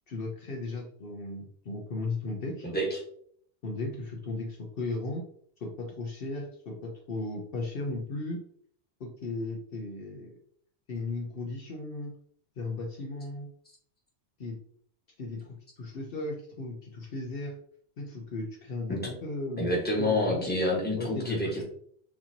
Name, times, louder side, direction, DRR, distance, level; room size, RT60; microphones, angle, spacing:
voice 1, 0.1-2.7 3.6-5.2 5.6-8.4 9.0-10.3 10.9-12.1 12.6-13.5 14.4-14.6 15.2-17.6 18.0-19.7 20.0-20.5 21.0-21.6, left 2 dB, 60° left, -1 dB, 0.9 m, -36 dB
voice 2, 2.6-3.0 18.9-19.0 19.6-21.6, left 1 dB, 10° left, -3 dB, 1.3 m, -28 dB
6.5 x 2.9 x 2.8 m, 0.63 s
omnidirectional pair, 1.1 m